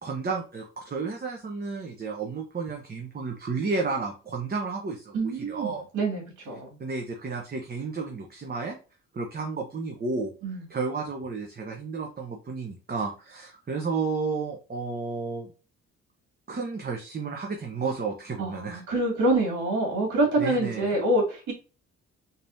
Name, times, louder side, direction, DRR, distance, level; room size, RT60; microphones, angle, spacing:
voice 1, 0.0-5.9 6.8-8.8 9.1-10.3 10.7-15.5 16.5-18.8 20.4-20.9, right 4 dB, 30° right, 1 dB, 0.9 m, -32 dB
voice 2, 5.1-6.7 10.4-10.6 18.4-21.5, right 2 dB, 70° right, -1 dB, 2.3 m, -26 dB
4.1 x 3.6 x 2.7 m, 0.34 s
cardioid pair, 90°, 30 cm